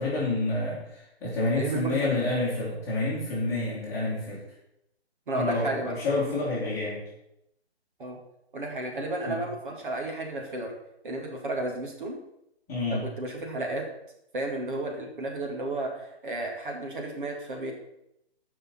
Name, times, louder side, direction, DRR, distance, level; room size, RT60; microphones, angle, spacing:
voice 1, 0.0-4.4 5.3-7.0 9.2-9.4 12.7-13.0, left 2 dB, 10° left, -9 dB, 2.3 m, -28 dB
voice 2, 1.5-2.2 3.5-3.7 5.3-5.9 8.0-8.2 8.5-10.7 11.0-12.2 12.9-13.9 14.3-17.7, right 2 dB, 50° right, 0 dB, 2.3 m, -32 dB
14.5 x 5.6 x 4.3 m, 0.81 s
hypercardioid pair, 170°, 33 cm